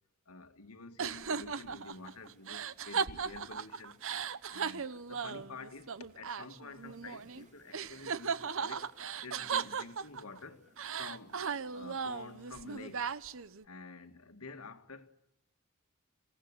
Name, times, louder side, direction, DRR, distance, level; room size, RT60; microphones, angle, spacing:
voice 1, 0.3-4.0 4.5-11.4 11.7-13.1 13.6-15.1, left 3 dB, 85° left, 2.0 m, -49 dB
sound 1, 1.0-7.4 7.7-10.4 10.8-13.6, right 6 dB, 65° right, 0.9 m, -37 dB
sound 2, 1.2-13.1, right 1 dB, 35° right, 4.0 m, -67 dB
28.5 x 17.0 x 9.8 m
head